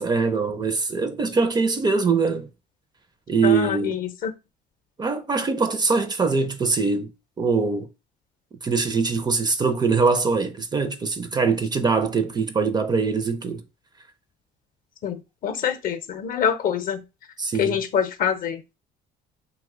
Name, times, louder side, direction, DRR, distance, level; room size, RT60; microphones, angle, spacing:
voice 1, 0.0-2.5 3.3-4.0 5.0-7.1 7.4-7.9 8.6-13.6 17.4-17.8, right 4 dB, 25° right, 0.4 m, -23 dB
voice 2, 3.4-4.3 15.0-17.0 17.6-18.6, left 8 dB, 55° left, 0.6 m, -25 dB
2.9 x 2.1 x 3.6 m
cardioid pair, 110°, 17 cm